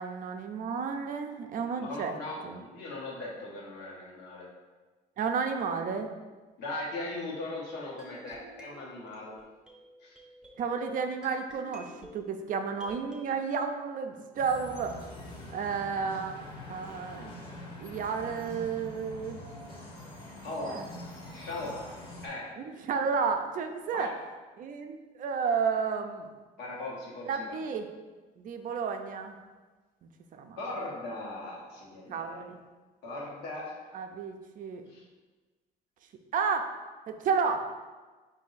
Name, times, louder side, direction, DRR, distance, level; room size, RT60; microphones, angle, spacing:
voice 1, 0.0-2.2 2.4-2.6 5.2-6.1 10.6-14.9 15.5-16.3 16.7-17.4 17.8-19.4 20.6-20.9 21.7-21.8 22.6-24.1 24.6-26.3 27.2-27.9 28.4-29.4 30.0-30.6 32.1-32.6 33.9-34.8 36.3-36.8 37.1-37.7, right 5 dB, 55° right, 6 dB, 0.4 m, -32 dB
voice 2, 1.8-4.5 6.6-9.3 10.0-10.1 20.4-20.8 21.3-21.8 22.2-22.5 23.9-24.1 26.6-27.6 30.6-32.2 33.0-33.7 34.9-35.0, left 2 dB, 80° left, -4 dB, 1.2 m, -38 dB
sound 1, 8.0-13.2, equal, 5° right, 0.7 m, -52 dB
sound 2, 14.4-22.3, left 1 dB, 30° left, 0.8 m, -45 dB
4.1 x 2.6 x 3.9 m, 1.3 s
cardioid pair, 110°, 17 cm